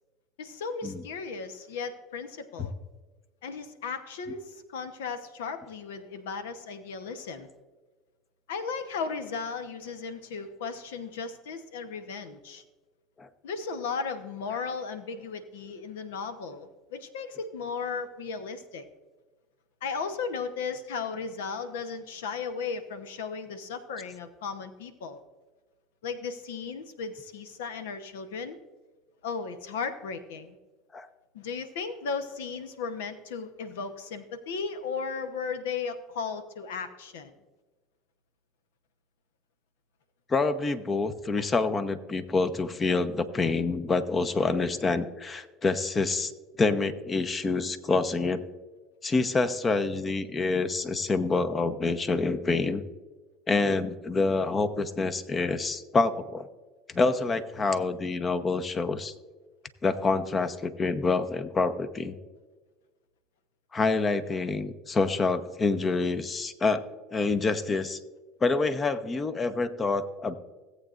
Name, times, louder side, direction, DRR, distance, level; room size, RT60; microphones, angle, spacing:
voice 1, 0.4-2.7 3.4-7.5 8.5-12.6 13.4-18.9 19.8-25.2 26.0-28.6 29.2-30.6 31.3-37.3 41.4-41.5, left 5 dB, 85° left, 10 dB, 0.9 m, -35 dB
voice 2, 40.3-46.3 46.6-48.4 49.0-52.8 53.5-56.5 56.9-59.1 59.8-62.2 63.7-68.0 68.4-70.4, left 3 dB, 30° left, 12 dB, 0.9 m, -27 dB
17.5 x 8.2 x 2.5 m, 1.3 s
hypercardioid pair, 85°, 0 cm